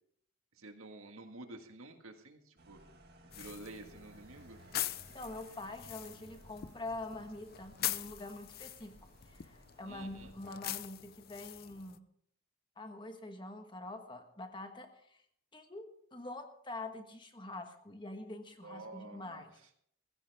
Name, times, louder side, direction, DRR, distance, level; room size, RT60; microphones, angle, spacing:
voice 1, 0.6-2.8 3.3-4.6 9.8-10.3 18.6-19.5, right 2 dB, 80° right, 5 dB, 1.8 m, -50 dB
sound 1, 2.6-10.3, right 1 dB, 50° right, 2.0 m, -59 dB
sound 2, 3.3-12.0, left 13 dB, 45° left, 0.5 m, -43 dB
voice 2, 5.1-12.0 12.8-15.2 15.5-19.5, left 2 dB, 20° left, 6 dB, 1.3 m, -45 dB
15.5 x 15.0 x 3.5 m, 0.68 s
head